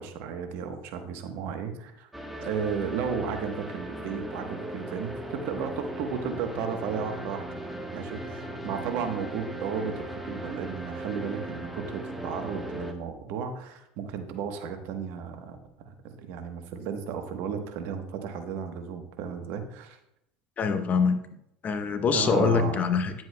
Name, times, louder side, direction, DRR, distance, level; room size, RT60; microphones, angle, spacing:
voice 1, 0.0-2.1 2.4-7.4 7.9-15.6 15.8-20.0 22.1-22.8, right 6 dB, 65° right, 6 dB, 1.1 m, -34 dB
sound 1, 2.1-12.9, right 1 dB, 5° right, 1.1 m, -38 dB
voice 2, 20.6-21.2 21.6-23.1, left 5 dB, 40° left, 7 dB, 0.9 m, -24 dB
9.8 x 7.7 x 2.2 m, 0.79 s
hypercardioid pair, 85°, 4 cm